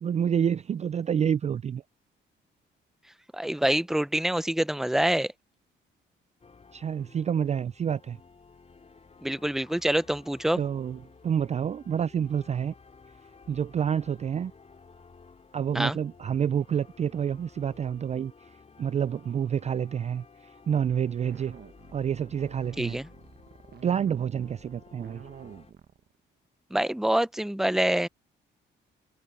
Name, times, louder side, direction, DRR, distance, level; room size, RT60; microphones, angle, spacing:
voice 1, 0.0-1.8 6.7-8.2 10.5-12.7 13.5-14.5 15.5-18.3 18.8-21.6 21.9-23.0 23.8-25.2, right 8 dB, 35° right, 0.4 m, -28 dB
voice 2, 3.3-5.3 9.2-10.6 15.7-16.0 22.8-23.1 26.7-28.1, right 1 dB, ahead, 0.7 m, -26 dB
sound 1, 6.4-25.7, left 4 dB, 35° left, 6.0 m, -54 dB
sound 2, 21.2-26.2, right 9 dB, 55° right, 1.4 m, -48 dB
cardioid pair, 90°, 20 cm